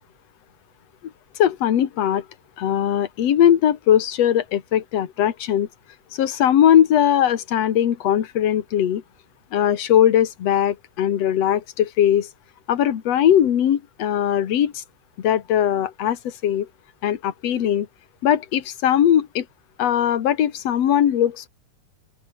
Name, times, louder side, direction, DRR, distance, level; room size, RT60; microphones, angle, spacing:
voice 1, 1.4-2.2 2.6-5.7 6.2-9.0 9.5-12.3 12.7-14.7 15.2-16.7 17.0-17.9 18.2-19.4 19.8-21.5, left 10 dB, 60° left, 2.7 m, -19 dB
open air
omnidirectional pair, 3.5 m